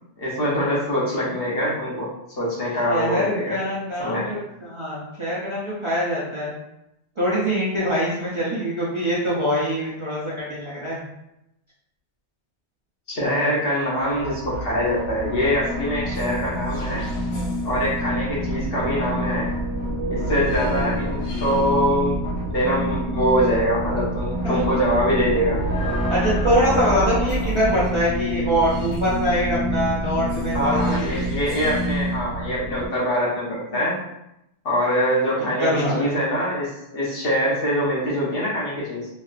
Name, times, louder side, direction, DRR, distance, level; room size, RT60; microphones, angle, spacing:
voice 1, 0.2-2.1 2.4-3.6 4.0-4.2 13.1-17.0 17.6-19.5 20.1-25.6 30.5-34.0 34.6-39.1, equal, 55° left, -5 dB, 1.1 m, -24 dB
voice 2, 2.8-6.5 7.2-11.0 24.4-24.6 26.1-31.1 35.6-36.0, equal, 35° right, -8 dB, 0.6 m, -24 dB
sound 1, 14.0-32.9, equal, 85° left, 1.0 m, -27 dB
3.1 x 2.7 x 2.4 m, 0.85 s
omnidirectional pair, 1.2 m